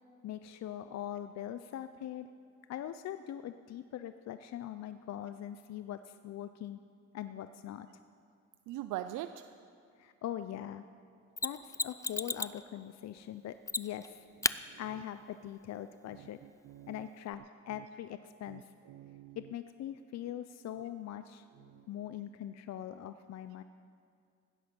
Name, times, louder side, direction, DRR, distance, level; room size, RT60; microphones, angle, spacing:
voice 1, 0.2-2.3 2.7-6.8 7.1-7.9 10.0-10.8 11.4-14.2 14.8-16.4 16.9-18.6 19.4-21.4 21.9-23.6, left 11 dB, 60° left, 11 dB, 0.5 m, -42 dB
voice 2, 8.7-9.5 14.7-14.8 16.1-17.1 17.7-17.8 18.5-19.5 21.6-21.9, right 13 dB, 85° right, 10 dB, 0.5 m, -44 dB
Mechanisms, 11.4-12.6 13.7-14.1 14.4-14.6 17.3-17.4, left 3 dB, 10° left, 0.3 m, -33 dB
16.0 x 10.0 x 6.1 m, 2.3 s
cardioid pair, 90°, 30 cm